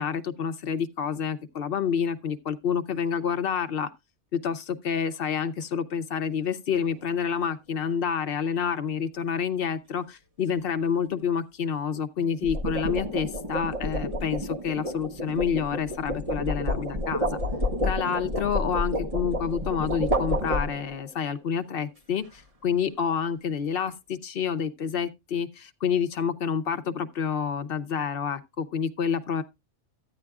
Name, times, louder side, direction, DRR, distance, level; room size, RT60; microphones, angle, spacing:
voice 1, 0.0-3.9 4.3-17.4 17.8-29.4, left 7 dB, 55° left, 0.8 m, -28 dB
sound 1, 6.7-7.0 12.2-21.1, equal, 30° right, 1.0 m, -30 dB
13.5 x 8.8 x 2.3 m
omnidirectional pair, 1.2 m